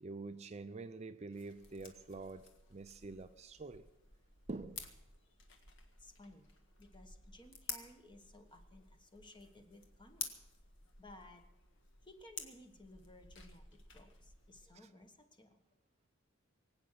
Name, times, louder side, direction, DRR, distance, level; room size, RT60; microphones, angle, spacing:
voice 1, 0.0-3.8 4.5-4.8 14.7-14.9, right 3 dB, 35° right, 10 dB, 0.5 m, -46 dB
sound 1, 1.3-14.6, left 5 dB, 65° left, 1.7 m, -52 dB
voice 2, 6.0-6.5 6.8-10.3 11.0-11.4 12.0-13.7 13.9-15.6, left 1 dB, 25° left, 6 dB, 1.3 m, -58 dB
23.5 x 8.8 x 5.8 m, 0.96 s
head